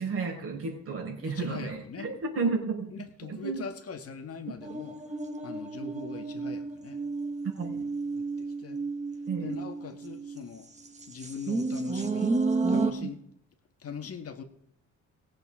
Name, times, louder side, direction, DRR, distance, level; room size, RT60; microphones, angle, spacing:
voice 1, 0.0-2.9 3.3-3.6 7.5-7.9 9.3-9.5, right 4 dB, 50° right, 0 dB, 5.0 m, -32 dB
voice 2, 1.2-2.1 2.4-2.5 2.9-5.0 5.4-7.0 8.2-8.8 9.4-10.7 11.1-12.3 12.7-13.2 13.8-14.4, left 6 dB, 50° left, 5 dB, 1.8 m, -41 dB
sound 1, 4.6-10.4 11.0-12.9, right 3 dB, 25° right, 1.8 m, -31 dB
21.0 x 8.0 x 3.8 m, 0.71 s
cardioid pair, 90°, 30 cm